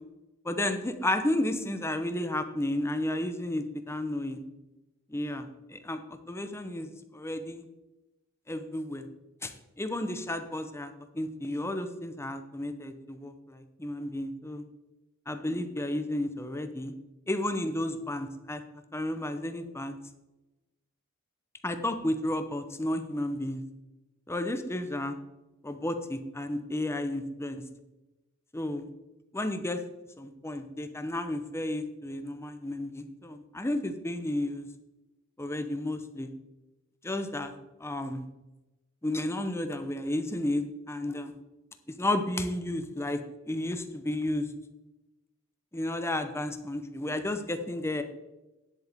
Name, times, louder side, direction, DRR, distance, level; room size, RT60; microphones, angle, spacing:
voice 1, 0.4-4.4 5.1-6.9 7.1-7.6 8.5-9.1 9.4-9.5 9.8-14.6 15.3-16.9 17.3-18.6 18.9-20.0 21.6-23.6 24.3-25.2 25.6-27.6 28.5-28.9 29.3-29.8 30.2-34.7 35.4-36.3 37.0-37.5 37.8-38.3 39.0-41.3 42.0-43.2 43.5-44.5 45.7-48.0, left 1 dB, 10° left, 8 dB, 0.7 m, -32 dB
10.0 x 7.8 x 3.5 m, 1.0 s
head